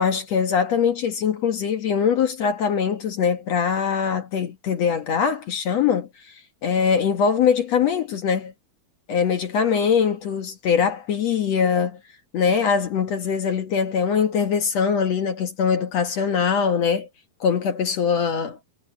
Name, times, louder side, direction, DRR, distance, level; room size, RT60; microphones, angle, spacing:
voice 1, 0.0-6.1 6.6-8.5 9.1-12.0 12.3-17.1 17.4-18.6, left 6 dB, 55° left, 2.0 m, -22 dB
omnidirectional pair, 4.4 m